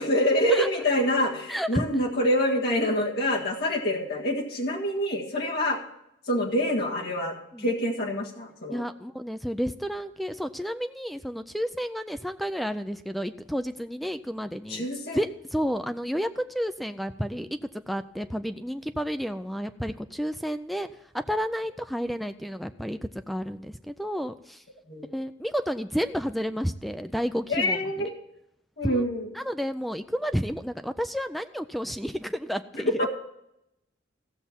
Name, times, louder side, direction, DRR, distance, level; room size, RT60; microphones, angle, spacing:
voice 1, 0.0-5.8 6.3-8.8 14.7-15.2 24.9-25.1 27.5-28.1 28.8-29.3 32.7-33.1, equal, 60° left, -1 dB, 1.8 m, -26 dB
voice 2, 1.5-1.8 7.5-7.7 8.7-14.9 15.1-17.6 17.9-20.9 21.1-23.0 23.3-24.6 25.1-28.1 28.8-29.1 29.3-32.9, equal, ahead, 9 dB, 0.4 m, -31 dB
15.5 x 6.9 x 4.3 m, 0.82 s
head